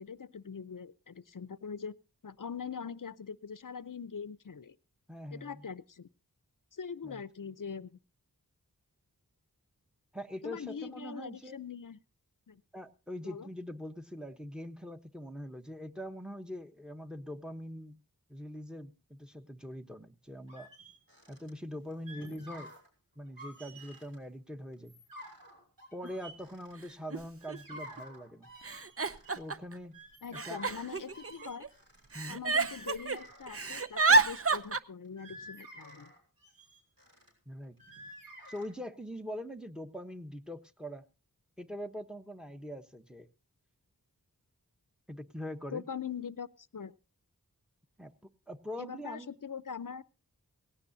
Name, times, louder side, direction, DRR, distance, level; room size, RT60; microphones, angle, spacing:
voice 1, 0.0-2.0 2.2-4.8 5.3-6.1 6.7-8.0 10.4-12.0 12.5-12.6 13.2-13.5 30.2-31.7 32.3-36.1 45.7-46.9 48.8-50.0, left 6 dB, 60° left, 16 dB, 0.7 m, -42 dB
voice 2, 5.1-5.7 7.0-7.2 10.1-11.6 12.7-18.0 18.3-20.7 21.3-22.7 23.2-25.0 25.9-28.5 29.4-30.0 30.3-30.6 32.1-32.4 37.5-37.8 38.5-41.0 41.6-43.3 45.1-45.8 48.0-49.3, equal, ahead, 8 dB, 1.0 m, -43 dB
sound 1, 20.5-21.5 21.9-22.9 23.3-24.2 24.7-27.1 27.4-29.4 29.8-33.5 33.9-34.7 35.0-37.3 37.8-38.7, right 1 dB, 65° right, 6.5 m, -51 dB
Giggle, 26.0-26.1 27.1-27.2 27.5-28.0 28.6-29.7 30.3-31.7 32.1-33.2 33.5-34.8, right 3 dB, 40° right, 0.6 m, -29 dB
18.5 x 16.5 x 2.7 m, 0.31 s
wide cardioid pair, 45°, 37 cm